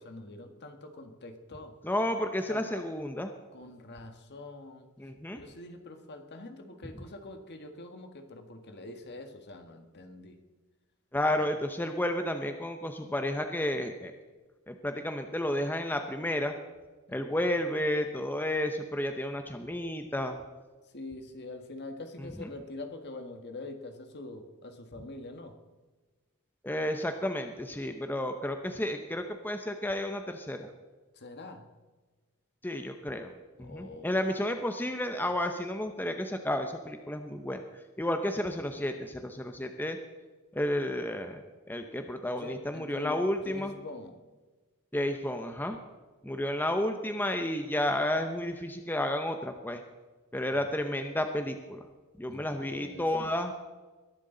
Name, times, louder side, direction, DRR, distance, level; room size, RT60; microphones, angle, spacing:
voice 1, 0.0-1.7 2.5-2.6 3.5-4.9 5.3-10.4 11.4-11.5 17.1-17.2 20.9-25.6 31.1-31.7 33.6-34.4 42.3-44.2 50.5-50.7 52.3-53.4, left 2 dB, 50° left, 6 dB, 1.7 m, -45 dB
voice 2, 1.8-3.3 5.0-5.4 11.1-14.1 14.7-16.5 17.1-20.4 26.6-30.7 32.6-33.3 33.6-37.6 38.0-40.0 40.5-41.4 41.7-43.7 44.9-45.8 46.2-49.8 50.3-51.8 52.2-53.5, left 1 dB, 10° left, 6 dB, 0.8 m, -31 dB
21.5 x 11.5 x 3.9 m, 1.3 s
head